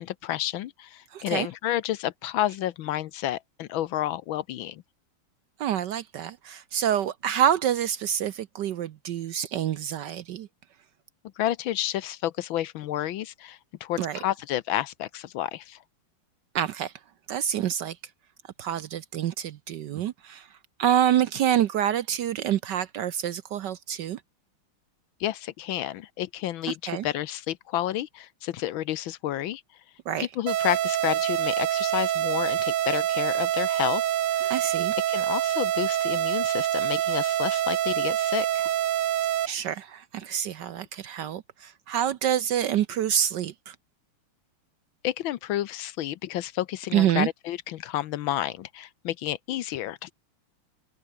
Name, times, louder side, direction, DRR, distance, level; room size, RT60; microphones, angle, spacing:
voice 1, 0.0-4.8 11.4-15.8 25.2-29.6 30.2-34.0 34.3-34.6 35.1-38.7 45.0-50.1, left 13 dB, 70° left, 1.4 m, -30 dB
voice 2, 1.1-1.5 5.6-10.5 14.0-14.2 16.5-16.9 17.3-18.0 18.6-20.5 20.8-24.2 26.7-27.1 30.1-30.3 34.5-34.9 39.5-43.7 46.9-47.3, right 10 dB, 65° right, 1.2 m, -27 dB
sound 1, 30.5-39.5, right 11 dB, 90° right, 2.1 m, -26 dB
omnidirectional pair, 2.4 m